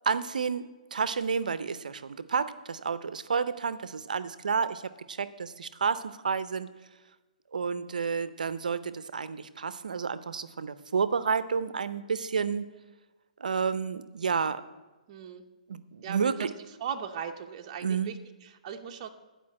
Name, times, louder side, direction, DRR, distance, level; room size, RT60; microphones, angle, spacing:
voice 1, 0.0-0.6 0.9-4.8 5.1-6.7 7.5-12.6 13.4-14.6 15.7-16.5 17.8-18.1, right 5 dB, 80° right, 14 dB, 0.6 m, -30 dB
voice 2, 15.1-15.4 16.0-16.5 16.8-19.1, right 8 dB, 40° right, 4 dB, 0.8 m, -38 dB
11.0 x 5.1 x 7.5 m, 1.2 s
hypercardioid pair, 135°, 4 cm